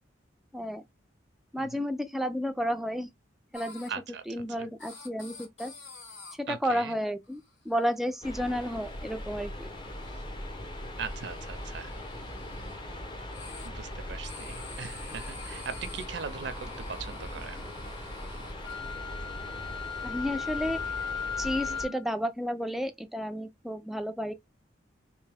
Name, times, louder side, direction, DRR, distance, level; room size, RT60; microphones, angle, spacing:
voice 1, 0.5-0.8 1.5-3.1 3.5-3.9 4.3-5.7 6.4-7.4 7.7-9.7 20.0-20.8 21.4-24.3, equal, ahead, 0.4 m, -32 dB
sound 1, 3.5-3.9 4.8-6.3 7.2-7.5 7.8-8.2 8.6-9.1 9.4-10.2 11.0-12.8 13.3-13.7 14.2-18.7, left 3 dB, 80° left, 2.0 m, -49 dB
voice 2, 3.9-4.2 4.6-4.7 6.5-7.0 11.0-11.9 13.6-17.7 21.7-21.9, right 6 dB, 65° right, 0.5 m, -40 dB
sound 2, 8.2-21.9, left 1 dB, 25° left, 0.7 m, -40 dB
Wind instrument woodwind instrument, 18.6-22.0, left 6 dB, 60° left, 1.1 m, -36 dB
3.4 x 2.7 x 3.3 m
head